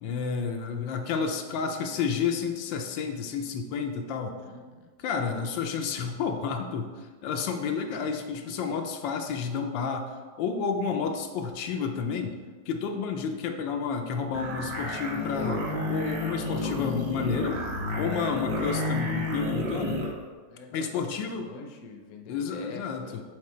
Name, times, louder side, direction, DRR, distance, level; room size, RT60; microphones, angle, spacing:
voice 1, 0.0-4.4 5.0-10.1 10.4-12.4 12.7-17.6 18.0-20.1 20.7-21.5 22.3-23.2, left 6 dB, 80° left, 4 dB, 1.3 m, -30 dB
voice 2, 4.5-4.9 20.5-23.1, left 4 dB, 60° left, 2 dB, 1.0 m, -45 dB
sound 1, 14.3-20.1, left 2 dB, 70° right, 1.9 m, -31 dB
6.5 x 4.1 x 4.2 m, 1.4 s
omnidirectional pair, 2.0 m